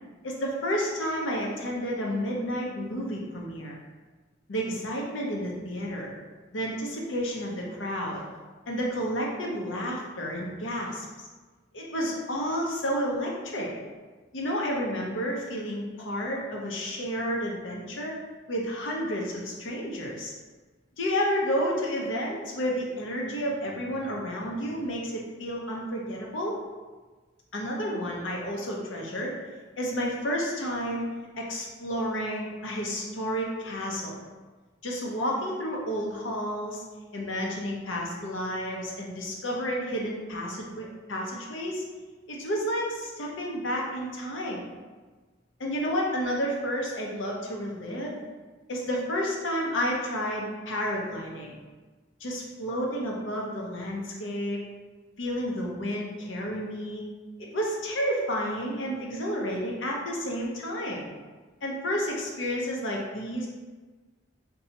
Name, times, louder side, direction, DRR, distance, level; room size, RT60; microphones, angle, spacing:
voice 1, 0.2-3.7 4.5-6.1 6.5-8.2 8.7-11.0 11.7-13.7 14.3-18.1 18.5-20.3 21.0-26.5 27.5-29.3 29.8-31.1 31.4-34.2 34.8-36.8 37.1-41.8 42.3-44.6 45.6-48.2 48.7-51.6 52.2-54.6 55.2-57.0 57.4-61.1 61.6-63.5, equal, 85° left, -2 dB, 0.7 m, -31 dB
2.7 x 2.3 x 3.9 m, 1.3 s
head